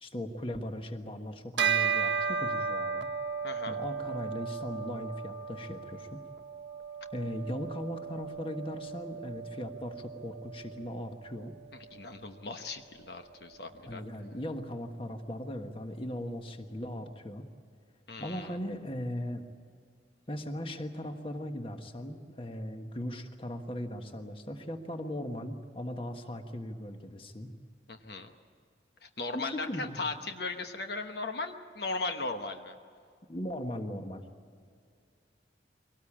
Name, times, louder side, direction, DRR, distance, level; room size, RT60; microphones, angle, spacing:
voice 1, 0.0-3.1 3.7-6.2 7.1-11.5 13.9-17.5 18.2-19.4 20.3-27.5 29.3-29.9 33.3-34.2, left 1 dB, 30° left, 6 dB, 1.4 m, -38 dB
Bell, 1.6-11.3, right 6 dB, 90° right, 1.3 m, -35 dB
voice 2, 3.4-3.8 11.7-14.0 18.1-18.6 27.9-28.3 29.0-32.7, left 3 dB, 65° left, 6 dB, 1.1 m, -37 dB
23.5 x 18.5 x 8.8 m, 2.2 s
head